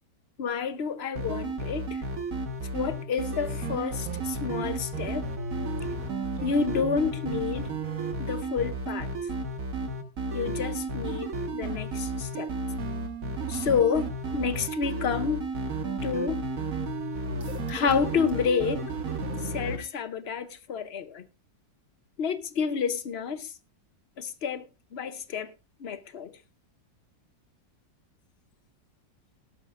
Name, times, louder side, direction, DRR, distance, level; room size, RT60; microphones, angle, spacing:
voice 1, 0.4-2.0 2.7-5.3 6.4-7.7 8.2-9.1 10.3-12.5 13.5-15.4 16.0-16.4 17.7-18.8 19.4-21.2 22.2-23.5 24.2-24.6 24.9-25.5 25.8-26.3, left 6 dB, 55° left, 0.7 m, -29 dB
sound 1, 1.1-19.8, right 2 dB, 50° right, 1.8 m, -32 dB
sound 2, 17.4-18.5 18.8-18.9 19.2-19.3, right 1 dB, 20° right, 3.7 m, -56 dB
17.0 x 12.5 x 2.5 m
omnidirectional pair, 2.0 m